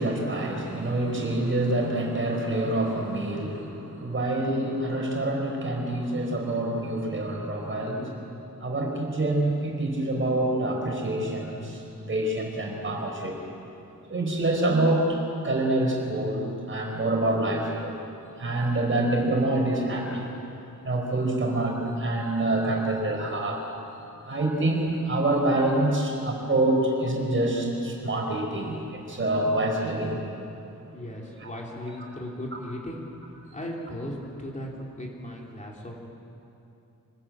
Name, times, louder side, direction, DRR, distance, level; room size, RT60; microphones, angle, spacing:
voice 1, 0.0-8.2 8.6-13.4 14.1-15.2 15.4-18.0 18.4-20.3 20.8-23.6 24.3-30.2 31.4-31.5, right 1 dB, 40° right, 1 dB, 4.9 m, -26 dB
voice 2, 30.9-33.0 33.5-35.9, left 1 dB, 25° left, -2 dB, 3.1 m, -37 dB
25.5 x 20.5 x 8.7 m, 2.8 s
wide cardioid pair, 160°, 33 cm